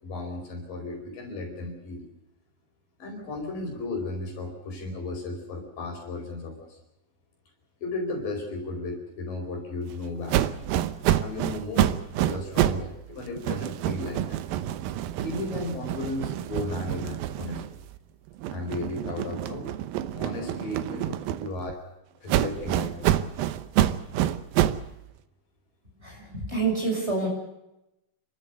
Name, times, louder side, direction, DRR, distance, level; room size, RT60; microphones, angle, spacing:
voice 1, 0.0-2.1 3.0-6.8 7.8-10.6 11.2-11.9 12.2-14.4 15.2-17.8 18.5-19.7 20.1-21.8 22.2-23.1, left 2 dB, 65° left, 2 dB, 6.3 m, -35 dB
sound 1, 10.3-12.9 13.2-18.0 18.4-21.7 22.3-24.9, right 12 dB, 80° right, 2.6 m, -27 dB
voice 2, 26.0-27.3, right 4 dB, 15° right, 0 dB, 7.3 m, -27 dB
29.0 x 13.5 x 8.2 m, 0.88 s
omnidirectional pair, 4.2 m